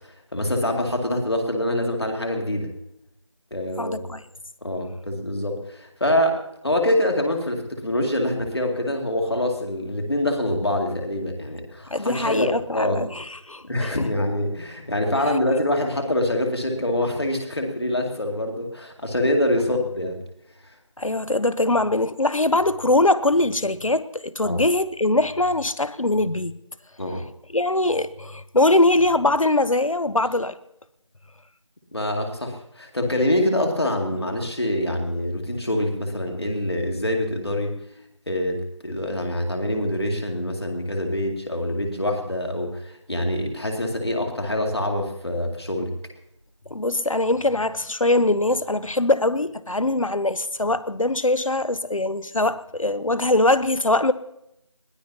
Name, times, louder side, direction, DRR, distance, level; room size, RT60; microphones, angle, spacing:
voice 1, 0.3-2.7 3.5-4.0 4.6-13.0 13.6-20.2 24.4-24.6 27.0-27.2 31.9-37.7 38.3-45.9, left 1 dB, 50° left, 2.4 m, -25 dB
voice 2, 3.8-4.2 11.9-14.1 21.0-26.6 27.5-30.6 46.7-54.1, left 2 dB, 80° left, 0.9 m, -22 dB
22.0 x 17.0 x 2.9 m
figure-of-eight pair, 175°, 17 cm